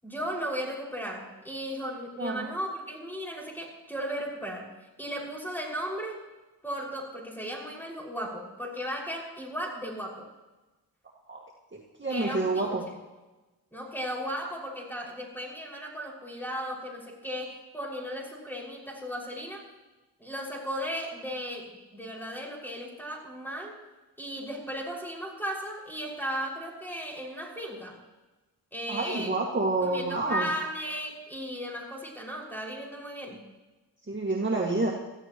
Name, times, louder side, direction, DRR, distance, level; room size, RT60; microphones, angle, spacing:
voice 1, 0.0-4.7 5.0-6.2 6.6-10.3 12.1-13.0 13.7-19.6 20.2-23.7 24.2-28.0 28.7-29.3 29.8-33.4, equal, 5° left, -1 dB, 5.9 m, -36 dB
voice 2, 11.7-12.8 28.9-30.5 34.1-34.9, right 2 dB, 30° right, -2 dB, 2.0 m, -28 dB
22.5 x 14.5 x 3.1 m, 1.1 s
cardioid pair, 50°, 38 cm